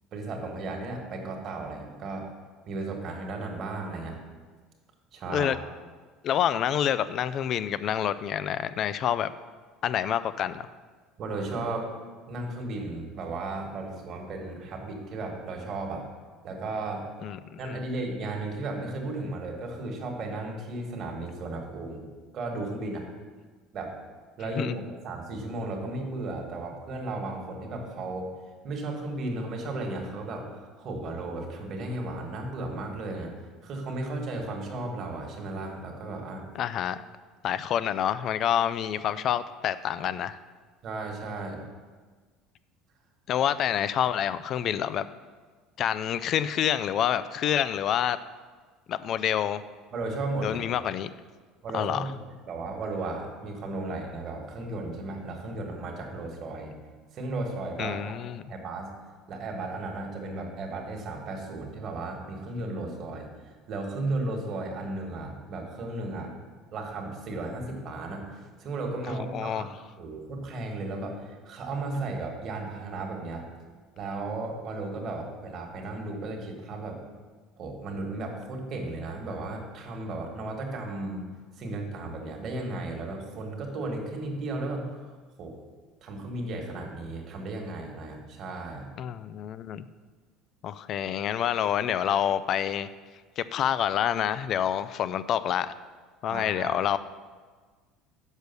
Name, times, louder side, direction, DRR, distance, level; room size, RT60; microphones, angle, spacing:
voice 1, 0.1-2.3 2.7-4.2 5.1-5.7 11.2-11.9 12.3-16.1 16.4-17.0 17.6-22.1 22.3-23.1 23.7-24.0 24.4-28.3 28.6-33.3 33.6-36.4 40.8-41.6 49.9-50.7 51.6-52.2 52.5-56.7 57.1-58.1 58.5-58.9 59.3-63.3 63.7-66.3 66.7-73.4 74.0-77.0 77.6-81.2 81.6-85.0 85.4-85.6 86.0-88.9 96.3-96.8, right 2 dB, 45° right, 1 dB, 1.6 m, -35 dB
voice 2, 6.2-9.3 9.8-10.7 17.2-17.8 24.6-24.7 36.6-37.0 37.4-40.4 43.3-45.0 45.8-48.2 48.9-49.6 50.4-51.1 51.7-52.1 57.8-58.4 69.3-69.6 89.0-89.9 90.6-92.9 93.4-95.7 96.2-97.0, left 10 dB, 50° left, 15 dB, 0.4 m, -27 dB
6.3 x 5.1 x 6.9 m, 1.4 s
supercardioid pair, 115°, 0 cm